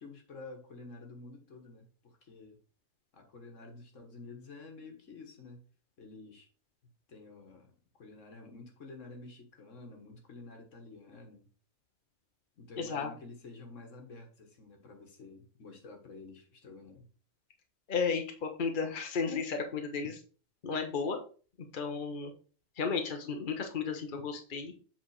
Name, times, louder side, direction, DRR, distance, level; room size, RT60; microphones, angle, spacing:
voice 1, 0.0-2.6 3.1-5.7 6.0-6.5 7.1-11.5 12.6-17.1, left 3 dB, 70° left, 4 dB, 1.8 m, -50 dB
voice 2, 12.8-13.1 17.9-20.2 20.6-21.2 21.7-22.3 22.8-24.7, left 5 dB, 40° left, 4 dB, 1.2 m, -33 dB
7.7 x 4.1 x 4.8 m, 0.39 s
omnidirectional pair, 1.3 m